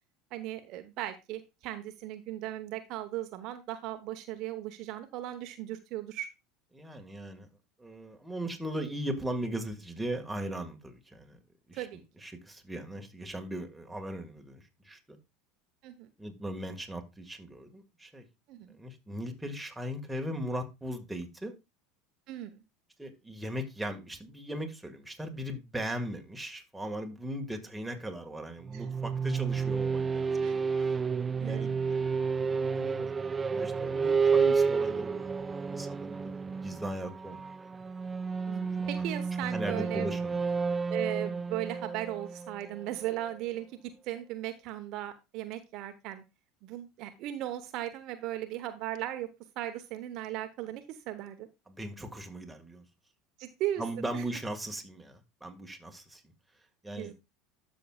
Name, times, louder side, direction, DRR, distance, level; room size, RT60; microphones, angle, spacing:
voice 1, 0.3-6.3 11.7-12.0 15.8-16.1 18.5-18.8 22.3-22.6 28.7-28.8 30.4-30.6 31.4-31.7 38.4-40.1 40.9-46.2 46.6-49.3 49.6-51.5 53.4-53.8 54.1-54.2 56.9-57.1, right 13 dB, 55° right, 0.9 m, -37 dB
voice 2, 6.7-7.5 7.8-11.4 11.7-11.9 12.2-15.0 16.2-18.2 18.8-21.5 23.0-31.8 32.3-33.2 33.4-37.4 38.8-39.1 39.4-40.4 51.7-52.8 53.8-56.2 56.8-57.1, right 1 dB, 5° right, 1.7 m, -38 dB
sound 1, 28.6-43.3, right 5 dB, 25° right, 0.4 m, -31 dB
12.5 x 6.4 x 2.3 m
hypercardioid pair, 75°, 0 cm